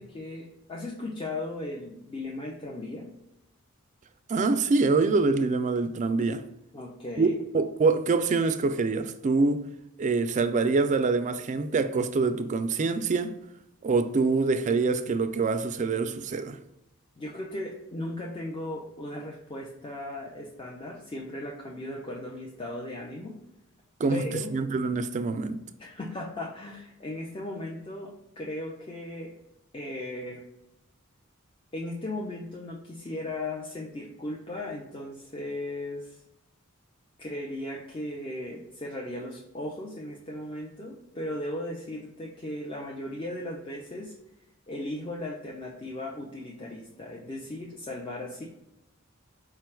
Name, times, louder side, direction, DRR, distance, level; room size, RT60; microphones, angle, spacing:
voice 1, 0.0-3.1 6.7-7.4 17.2-23.4 24.1-24.5 25.8-29.3 29.7-30.4 31.7-36.2 37.2-44.1 44.7-48.4, left 1 dB, 25° left, 0.5 m, -37 dB
voice 2, 4.3-6.4 7.2-7.3 7.5-9.7 10.0-13.3 13.8-16.6 24.0-24.2 24.5-25.6, right 4 dB, 35° right, 0.3 m, -25 dB
4.8 x 2.2 x 4.4 m
head